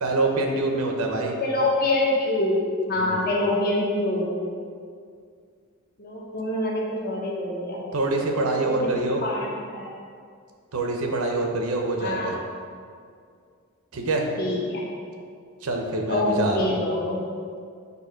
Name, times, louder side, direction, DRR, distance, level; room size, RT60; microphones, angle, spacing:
voice 1, 0.0-1.3 3.0-3.3 7.9-9.2 10.7-12.4 13.9-14.2 15.6-16.7, right 2 dB, 80° right, 2 dB, 0.8 m, -25 dB
voice 2, 1.4-4.3 6.0-7.8 8.6-8.9 9.2-9.9 12.0-12.3 14.4-14.8 16.1-17.2, left 2 dB, 45° left, -3 dB, 0.9 m, -25 dB
6.8 x 2.7 x 5.1 m, 2.2 s
head